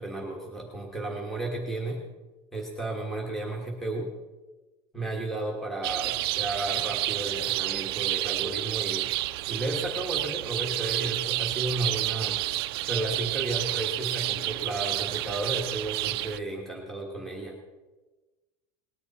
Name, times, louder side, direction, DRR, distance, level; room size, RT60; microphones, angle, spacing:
voice 1, 0.0-2.0 2.5-4.1 4.9-9.2 9.5-12.4 12.9-17.6, right 2 dB, ahead, -3 dB, 1.4 m, -33 dB
sound 1, 5.8-16.4, right 18 dB, 80° right, 0.4 m, -30 dB
19.0 x 10.0 x 4.2 m, 1.2 s
cardioid pair, 175°, 13 cm